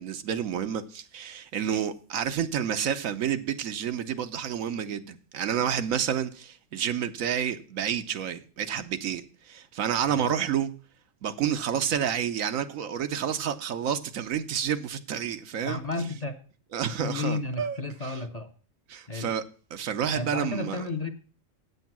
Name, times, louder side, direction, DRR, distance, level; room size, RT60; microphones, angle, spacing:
voice 1, 0.0-10.7 11.2-15.8 16.7-18.1 18.9-19.4 19.7-20.9, right 8 dB, 80° right, 1.2 m, -29 dB
voice 2, 15.7-16.4 17.0-18.5 19.1-19.3 20.1-21.1, left 3 dB, 35° left, 0.8 m, -32 dB
8.4 x 8.2 x 5.9 m
omnidirectional pair, 1.4 m